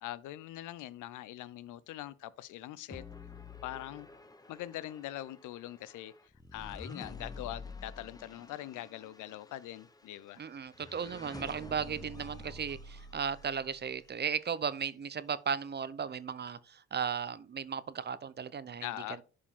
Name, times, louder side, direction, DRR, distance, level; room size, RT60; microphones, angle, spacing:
voice 1, 0.0-3.0 3.6-4.1 4.5-6.1 6.5-10.4 18.8-19.2, left 14 dB, 85° left, 0.6 m, -42 dB
sound 1, 2.9-14.2, left 2 dB, 10° left, 0.9 m, -49 dB
voice 2, 10.4-18.9, right 7 dB, 35° right, 0.7 m, -36 dB
11.0 x 5.0 x 3.7 m
cardioid pair, 90°, 30 cm